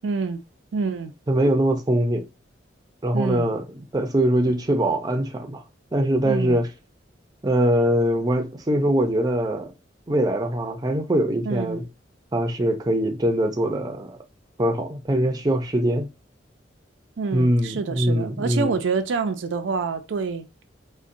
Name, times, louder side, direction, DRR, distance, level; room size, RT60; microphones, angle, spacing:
voice 1, 0.0-0.4 0.7-1.1 3.1-3.5 6.2-6.6 11.5-11.8 17.2-20.5, right 4 dB, 80° right, 0.4 m, -27 dB
voice 2, 1.3-2.2 3.0-3.6 3.9-5.6 5.9-6.7 7.4-9.7 10.1-11.8 12.3-14.2 14.6-16.1 17.3-18.8, right 1 dB, 20° right, 0.5 m, -22 dB
3.9 x 2.1 x 2.5 m
head